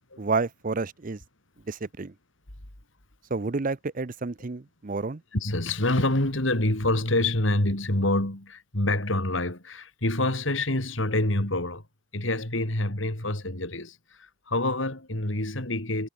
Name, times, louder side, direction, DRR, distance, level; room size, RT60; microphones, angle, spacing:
voice 1, 0.2-1.2 1.7-2.1 3.3-5.2, right 3 dB, 40° right, 0.6 m, -30 dB
voice 2, 5.3-11.8 12.1-16.1, left 1 dB, 70° left, 3.7 m, -26 dB
head